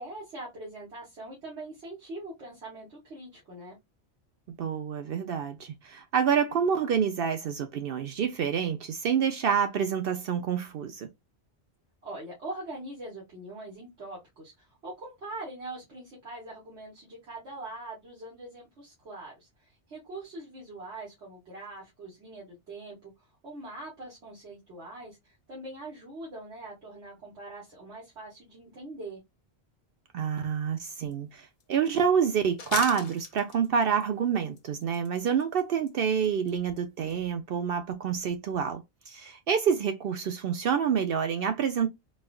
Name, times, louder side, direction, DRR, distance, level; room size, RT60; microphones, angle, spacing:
voice 1, 0.0-3.8 12.0-23.1 23.4-29.2, right 2 dB, 90° right, 1.7 m, -42 dB
voice 2, 4.5-11.1 30.1-38.8 39.1-41.9, right 7 dB, 65° right, 0.7 m, -27 dB
sound 1, 31.1-31.2 31.6-31.7 32.6-34.0 34.6-35.6 35.9-36.0 36.2-36.5 36.8-36.9 37.1-37.2, left 6 dB, 45° left, 0.6 m, -38 dB
4.1 x 2.4 x 2.3 m
omnidirectional pair, 1.1 m